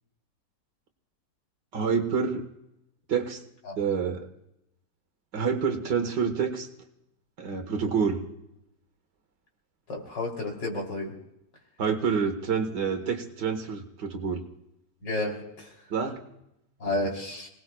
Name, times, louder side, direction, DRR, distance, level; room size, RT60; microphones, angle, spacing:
voice 1, 1.7-2.5 3.1-3.4 3.8-4.3 5.3-6.7 7.4-8.2 11.8-14.4 15.9-16.2 16.8-17.1, right 6 dB, 80° right, 6 dB, 2.1 m, -28 dB
voice 2, 9.9-11.1 15.0-15.7 16.8-17.5, left 2 dB, 85° left, 1 dB, 3.9 m, -31 dB
26.0 x 18.5 x 2.3 m, 0.84 s
omnidirectional pair, 1.9 m